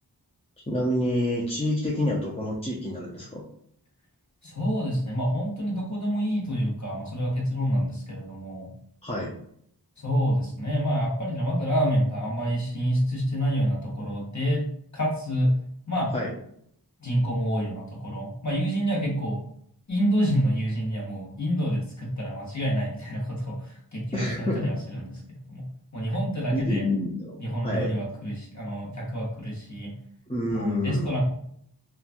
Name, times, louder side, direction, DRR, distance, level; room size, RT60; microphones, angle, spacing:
voice 1, 0.7-3.5 9.0-9.3 16.1-16.3 24.1-24.7 26.1-26.2 26.5-27.9 30.3-31.1, left 1 dB, 15° left, -5 dB, 0.5 m, -28 dB
voice 2, 4.4-8.7 10.0-14.6 14.9-15.5 15.9-16.1 17.0-19.4 19.9-25.1 25.5-25.6 25.9-26.8 27.4-29.9 30.5-31.2, equal, 45° left, -3 dB, 1.0 m, -27 dB
3.0 x 2.3 x 2.5 m, 0.67 s
wide cardioid pair, 40°, 41 cm